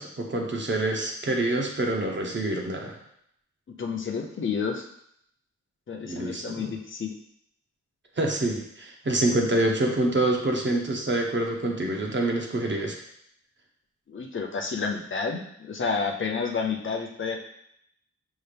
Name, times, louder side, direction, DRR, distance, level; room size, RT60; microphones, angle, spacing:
voice 1, 0.0-3.0 6.0-6.7 8.2-13.0, right 2 dB, 40° right, 1 dB, 0.8 m, -26 dB
voice 2, 3.8-4.8 5.9-7.1 14.1-17.4, left 5 dB, 45° left, 2 dB, 0.6 m, -30 dB
5.6 x 2.5 x 3.4 m, 0.72 s
wide cardioid pair, 100°, 29 cm